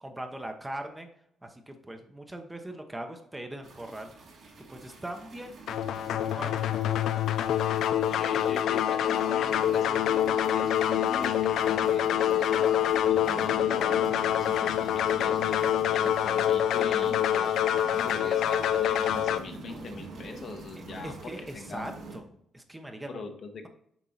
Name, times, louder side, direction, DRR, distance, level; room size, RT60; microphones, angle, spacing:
voice 1, 0.0-1.1 1.4-4.1 4.7-5.6 6.1-6.9 21.0-22.2 22.5-23.2, right 1 dB, 15° right, 5 dB, 0.9 m, -40 dB
sound 1, 3.6-22.2, right 2 dB, 65° right, 2.7 m, -46 dB
sound 2, 5.7-19.4, left 10 dB, 75° left, 0.4 m, -26 dB
voice 2, 8.1-21.9 23.1-23.7, left 4 dB, 60° left, 4 dB, 1.2 m, -42 dB
7.2 x 4.5 x 4.1 m, 0.71 s
cardioid pair, 90°, 0 cm